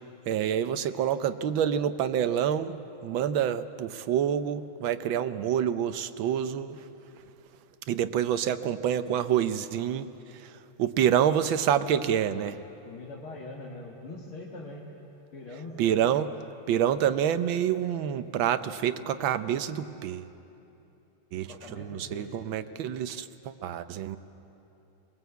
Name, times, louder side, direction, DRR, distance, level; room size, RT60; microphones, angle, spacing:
voice 1, 0.3-2.8 3.0-6.8 7.9-10.1 10.3-10.5 10.8-12.5 15.8-16.3 16.7-20.3 21.3-24.2, right 9 dB, 70° right, 11 dB, 1.5 m, -27 dB
voice 2, 12.8-14.8 15.3-16.0 20.7-20.8 21.5-22.4, left 2 dB, 80° left, -4 dB, 2.8 m, -43 dB
23.0 x 20.5 x 8.1 m, 2.9 s
omnidirectional pair, 2.3 m